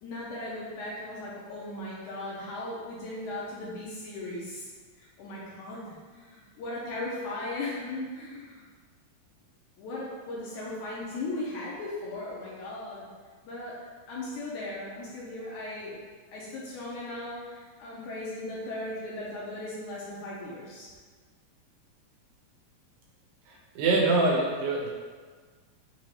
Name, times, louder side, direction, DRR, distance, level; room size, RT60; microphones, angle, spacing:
voice 1, 0.0-4.7 5.0-8.6 9.8-13.1 13.4-16.0 16.3-20.9, left 2 dB, 75° left, -6 dB, 1.9 m, -37 dB
voice 2, 23.5-24.9, right 2 dB, 85° right, -2 dB, 2.6 m, -25 dB
6.2 x 3.0 x 2.9 m, 1.5 s
omnidirectional pair, 4.0 m